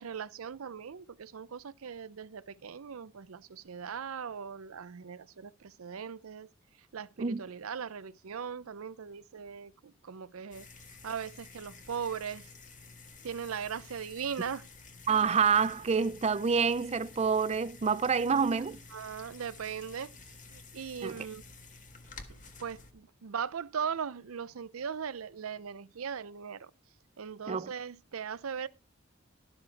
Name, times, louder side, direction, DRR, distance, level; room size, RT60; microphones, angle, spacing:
voice 1, 0.0-6.5 6.9-10.7 11.0-12.5 13.2-14.7 18.6-20.1 20.5-21.4 22.6-26.7 27.2-28.7, right 7 dB, 85° right, 0.6 m, -39 dB
sound 1, 10.5-22.9, left 4 dB, 40° left, 1.6 m, -51 dB
voice 2, 15.1-18.8 21.0-21.1 27.5-27.7, right 6 dB, 30° right, 0.5 m, -27 dB
12.5 x 7.2 x 4.5 m
head